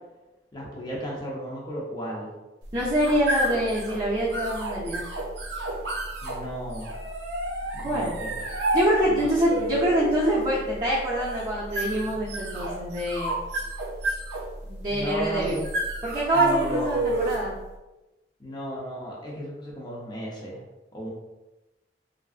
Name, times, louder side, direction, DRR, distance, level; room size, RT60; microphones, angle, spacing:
voice 1, 0.5-2.3 6.2-6.9 7.7-8.3 9.1-9.7 14.9-15.6 16.3-17.1 18.4-20.6 20.9-21.1, equal, 25° left, -4 dB, 0.6 m, -35 dB
sound 1, 2.6-17.5, right 2 dB, 85° right, 0.6 m, -30 dB
voice 2, 2.7-5.0 7.8-8.2 8.7-13.4 14.6-15.6 16.0-17.6, equal, 30° right, -7 dB, 0.6 m, -25 dB
3.3 x 2.5 x 2.4 m, 1.0 s
head